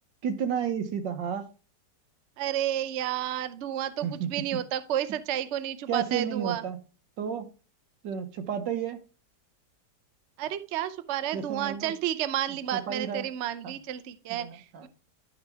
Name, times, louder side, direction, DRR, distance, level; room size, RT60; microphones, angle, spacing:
voice 1, 0.2-1.5 4.0-4.4 5.9-6.8 7.2-7.5 8.0-9.0 11.3-11.9 12.7-13.3 13.6-13.7 14.3-14.9, right 7 dB, 90° right, 8 dB, 1.7 m, -32 dB
voice 2, 2.4-6.6 10.4-14.9, right 11 dB, 60° right, 13 dB, 0.7 m, -31 dB
12.0 x 5.0 x 3.5 m, 0.35 s
omnidirectional pair, 1.9 m